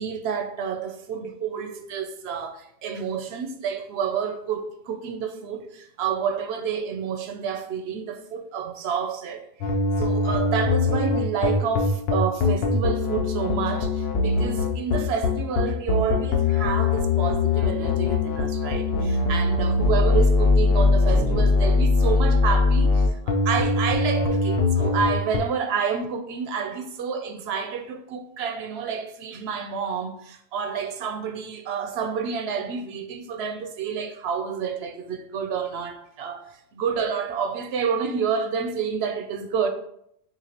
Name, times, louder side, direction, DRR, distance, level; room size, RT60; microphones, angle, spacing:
voice 1, 0.0-9.5 10.0-39.7, right 6 dB, 80° right, 0.8 m, -29 dB
sound 1, 9.6-25.4, left 3 dB, 70° left, 0.9 m, -21 dB
6.0 x 2.5 x 2.9 m
omnidirectional pair, 1.1 m